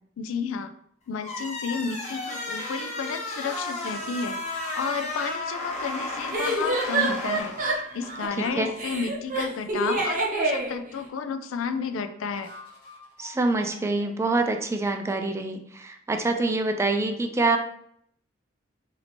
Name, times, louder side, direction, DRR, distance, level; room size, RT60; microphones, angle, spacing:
voice 1, 0.2-0.7 1.1-12.5, left 5 dB, 85° left, 9 dB, 0.4 m, -32 dB
sound 1, 1.2-8.2, left 2 dB, 35° left, 0.7 m, -34 dB
sound 2, 1.8-4.8 7.8-9.9 12.3-15.2, left 4 dB, 60° left, 1.4 m, -48 dB
sound 3, 3.9-4.0 6.3-8.5 8.8-10.8, right 2 dB, 45° right, 0.7 m, -27 dB
voice 2, 13.2-17.6, right 2 dB, 15° right, 4 dB, 0.3 m, -25 dB
2.8 x 2.7 x 4.2 m, 0.69 s
head